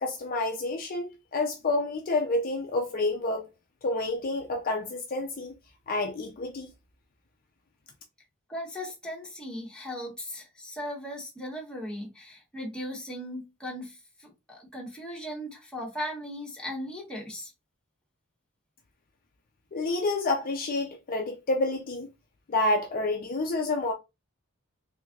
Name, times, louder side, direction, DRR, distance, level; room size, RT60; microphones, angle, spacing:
voice 1, 0.0-3.5 3.8-5.5 5.9-6.7 19.7-22.1 22.5-23.9, left 2 dB, 40° left, 0.5 m, -29 dB
voice 2, 8.5-17.5, equal, 5° left, 1.3 m, -38 dB
3.5 x 3.2 x 2.4 m
head